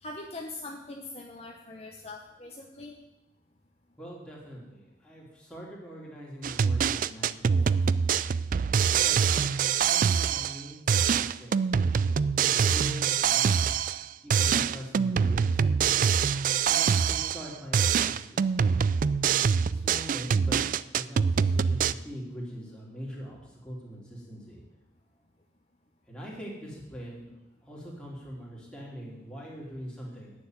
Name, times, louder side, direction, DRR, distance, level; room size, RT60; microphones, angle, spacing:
voice 1, 0.0-3.0, left 2 dB, 35° left, 1 dB, 1.0 m, -42 dB
voice 2, 4.0-7.3 7.5-7.8 8.8-9.4 9.8-11.6 12.4-15.6 16.6-18.5 19.6-20.6 20.9-24.6 26.1-30.3, equal, 5° left, -4 dB, 3.3 m, -42 dB
sound 1, 6.4-10.6 10.9-14.0 14.3-17.5 17.7-21.9, right 7 dB, 45° right, 0.3 m, -25 dB
10.0 x 7.0 x 9.3 m, 1.0 s
head